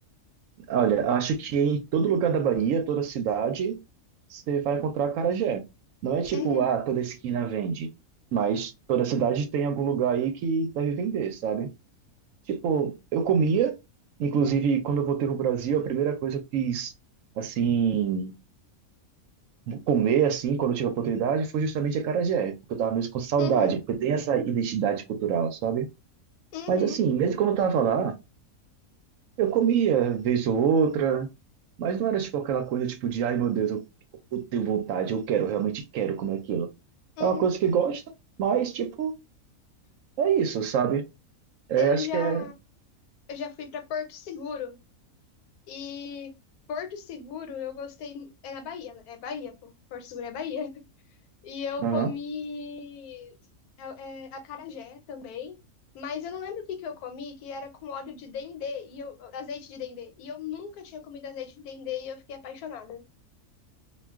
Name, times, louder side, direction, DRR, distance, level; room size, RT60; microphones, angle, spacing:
voice 1, 0.7-3.8 4.3-5.6 6.0-7.9 8.3-11.7 12.5-13.7 14.2-16.9 17.4-18.3 19.7-25.9 26.7-28.2 29.4-31.3 31.8-33.8 34.3-36.7 37.2-38.0 38.4-39.1 40.2-41.0 41.7-42.4 51.8-52.1, right 7 dB, 70° right, 0.9 m, -25 dB
voice 2, 6.3-6.7 23.4-23.7 26.5-27.0 37.2-37.5 41.7-42.5 43.3-44.8 45.7-46.3 46.7-50.8 51.4-53.3 53.8-55.6 55.9-63.0, left 6 dB, 85° left, 1.1 m, -36 dB
2.4 x 2.2 x 3.4 m
omnidirectional pair, 1.5 m